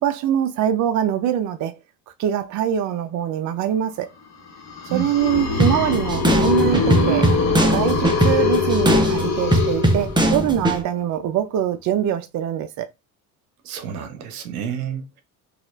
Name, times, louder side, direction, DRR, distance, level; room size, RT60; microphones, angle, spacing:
voice 1, 0.0-1.8 2.2-4.1 4.9-7.3 7.7-12.9, right 10 dB, 45° right, 0.5 m, -23 dB
sound 1, 4.6-10.5, left 4 dB, 40° left, 1.2 m, -22 dB
sound 2, 5.6-10.8, right 1 dB, 10° right, 0.7 m, -20 dB
voice 2, 13.6-15.2, right 8 dB, 85° right, 0.7 m, -30 dB
4.1 x 2.5 x 2.4 m
hypercardioid pair, 70°, 43 cm